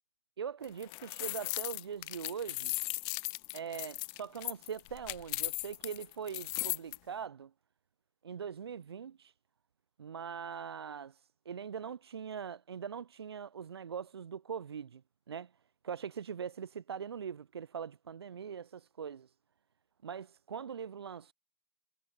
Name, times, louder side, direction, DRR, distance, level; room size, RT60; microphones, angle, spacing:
voice 1, 0.4-2.8 3.5-7.5 8.2-9.3 10.0-15.0 15.3-15.5 15.8-19.3 20.0-21.3, right 7 dB, 80° right, 0.4 m, -42 dB
sound 1, 0.6-7.0, left 36 dB, 35° left, 0.5 m, -37 dB
figure-of-eight pair, 110°, 13 cm